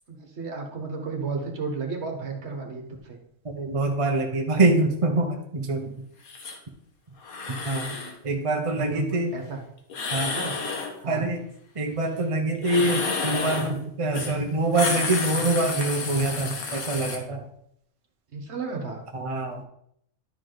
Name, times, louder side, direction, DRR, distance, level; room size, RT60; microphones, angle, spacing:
voice 1, 0.1-3.2 8.7-9.6 10.2-10.6 11.0-11.3 18.3-19.0, right 4 dB, 55° right, 2 dB, 1.5 m, -33 dB
voice 2, 3.4-5.9 7.6-7.9 8.2-9.3 10.1-10.3 11.1-11.4 11.8-17.5 19.1-19.6, right 2 dB, 30° right, 2 dB, 0.8 m, -25 dB
sound 1, 6.3-6.6 7.2-8.1 9.9-10.9 12.6-13.7 14.1-14.4 14.6-17.2, left 4 dB, 85° left, 1.6 m, -30 dB
11.5 x 4.9 x 3.9 m, 0.72 s
omnidirectional pair, 1.4 m